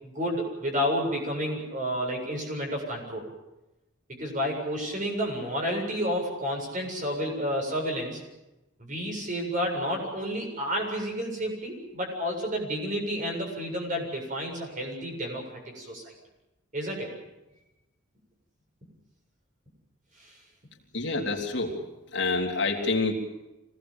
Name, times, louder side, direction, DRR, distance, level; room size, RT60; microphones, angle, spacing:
voice 1, 0.0-3.3 4.1-8.2 8.8-16.1 16.7-17.1, equal, 40° right, 1 dB, 7.6 m, -30 dB
voice 2, 20.9-21.8 22.1-23.1, left 3 dB, 60° left, 1 dB, 3.6 m, -27 dB
26.0 x 18.5 x 8.9 m, 0.98 s
head